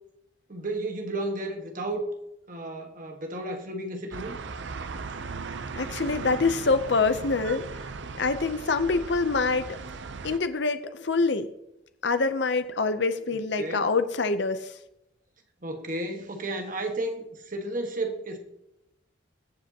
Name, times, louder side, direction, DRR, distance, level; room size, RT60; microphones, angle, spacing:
voice 1, 0.5-2.1 2.5-4.4 13.6-13.9 15.6-18.4, right 2 dB, 45° right, 1.6 m, -33 dB
sound 1, 4.1-10.4, right 4 dB, 65° right, 0.6 m, -38 dB
voice 2, 5.7-7.9 8.2-9.8 10.2-11.5 12.0-14.8, left 4 dB, 60° left, 0.7 m, -25 dB
22.0 x 7.7 x 2.9 m
head